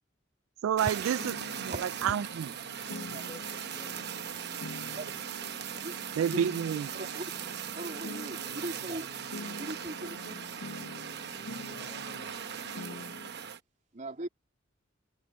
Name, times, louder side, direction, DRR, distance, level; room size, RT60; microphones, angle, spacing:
voice 1, 0.6-2.5 2.9-3.0 6.2-6.9, right 9 dB, 80° right, 0.3 m, -30 dB
Fire, 0.8-13.6, right 8 dB, 60° right, 1.0 m, -39 dB
sound 1, 1.0-13.3, left 2 dB, 75° left, 0.9 m, -46 dB
voice 2, 3.0-5.2 6.2-6.4 8.8-9.0 11.3-12.4, left 1 dB, 15° left, 4.6 m, -55 dB
voice 3, 5.8-6.4 6.9-7.3 7.7-9.1 9.6-10.4 13.9-14.3, right 1 dB, 40° right, 3.3 m, -39 dB
head